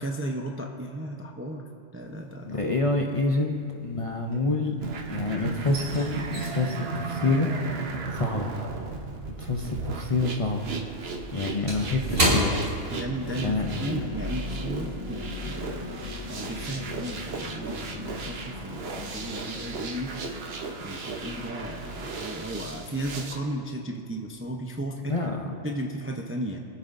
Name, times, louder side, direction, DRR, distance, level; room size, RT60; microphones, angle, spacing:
voice 1, 0.0-1.6 1.9-2.8 12.9-20.3 20.8-25.1 25.6-26.6, right 1 dB, 15° right, 1 dB, 0.6 m, -35 dB
sound 1, 2.2-2.7 3.0-5.0 5.2-9.9 10.2-13.5 13.8-14.0 14.5-14.8, right 1 dB, 75° right, 3.1 m, -32 dB
voice 2, 2.4-4.7 5.1-7.5 8.1-8.5 9.4-10.7 11.3-12.5 13.4-13.9 25.1-25.5, left 3 dB, 35° left, 1 dB, 0.7 m, -27 dB
sound 2, 4.8-23.4, right 4 dB, 60° right, 1.1 m, -35 dB
sound 3, 9.2-23.1, left 4 dB, 75° left, 0.9 m, -42 dB
25.0 x 8.5 x 2.6 m, 2.4 s
omnidirectional pair, 1.3 m